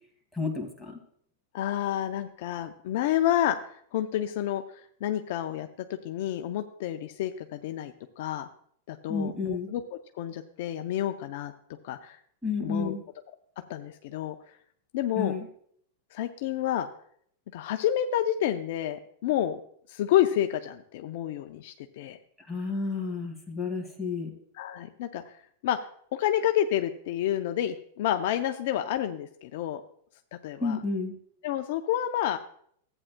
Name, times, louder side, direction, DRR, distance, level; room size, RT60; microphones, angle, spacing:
voice 1, 0.3-1.0 9.1-9.7 12.4-13.0 15.2-15.5 22.5-24.3 30.6-31.1, left 4 dB, ahead, 0 dB, 2.2 m, -31 dB
voice 2, 1.5-4.6 5.0-8.5 8.9-9.8 10.2-11.5 11.8-12.2 12.6-12.9 13.7-14.4 14.9-15.3 16.1-16.9 17.5-19.6 19.9-22.2 24.6-25.2 25.6-25.8 26.1-29.8 30.4-30.8 31.4-32.4, left 11 dB, 60° left, 7 dB, 0.5 m, -29 dB
14.0 x 8.8 x 2.2 m, 0.63 s
hypercardioid pair, 110°, 0 cm